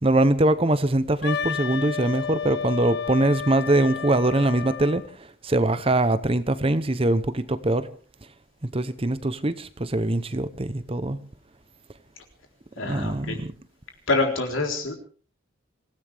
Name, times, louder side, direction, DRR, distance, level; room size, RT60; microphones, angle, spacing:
voice 1, 0.0-5.0 5.4-7.9 8.7-11.2 12.8-13.5, right 1 dB, 30° right, 0.8 m, -22 dB
Wind instrument woodwind instrument, 1.2-5.1, left 7 dB, 55° left, 1.1 m, -32 dB
voice 2, 12.8-13.4 14.1-15.0, left 3 dB, 75° left, 3.9 m, -26 dB
26.0 x 16.0 x 3.4 m
head